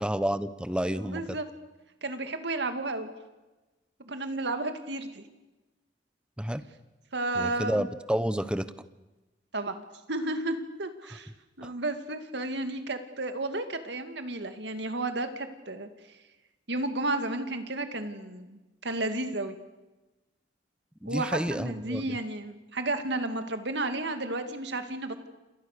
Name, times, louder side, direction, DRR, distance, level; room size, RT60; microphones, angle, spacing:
voice 1, 0.0-1.4 6.4-6.6 7.4-8.7 11.6-11.7 21.0-22.2, equal, 5° right, 13 dB, 1.0 m, -30 dB
voice 2, 0.9-1.5 2.0-3.1 4.0-5.2 7.1-7.9 9.5-9.8 10.1-11.3 11.6-15.9 16.7-19.5 21.1-25.3, right 2 dB, 65° right, 8 dB, 2.4 m, -32 dB
28.5 x 28.0 x 6.8 m, 1.1 s
head